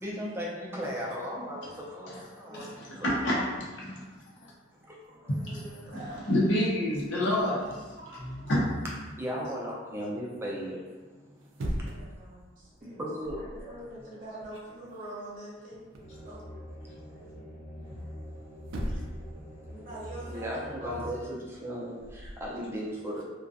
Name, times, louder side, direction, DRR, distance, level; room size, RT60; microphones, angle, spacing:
voice 1, 0.0-2.7 3.0-3.1 4.9-5.0 7.3-7.4 9.2-10.8 11.3-11.4 12.8-13.7 18.2-18.3 20.3-23.2, equal, 15° right, -4 dB, 0.4 m, -36 dB
voice 2, 2.4-3.3 5.0-6.5 8.0-8.5 11.6-15.8 16.2-16.5 16.7-16.8 17.1-17.5 19.7-21.1, right 1 dB, 45° right, -8 dB, 0.9 m, -45 dB
voice 3, 3.0-4.0 4.4-4.5 5.4-5.6 6.3-7.8 8.5-8.7, left 1 dB, 70° left, -5 dB, 0.7 m, -27 dB
sound 1, 3.5-3.9 4.5-4.6 4.9-9.2 11.3-12.2 12.6-12.8 13.2-13.8 14.0-16.2 18.2-18.3 18.6-19.3 19.6-22.5, equal, 90° right, 0.4 m, -41 dB
sound 2, 16.0-21.1, equal, 40° left, 0.9 m, -44 dB
2.4 x 2.3 x 2.5 m, 1.3 s
head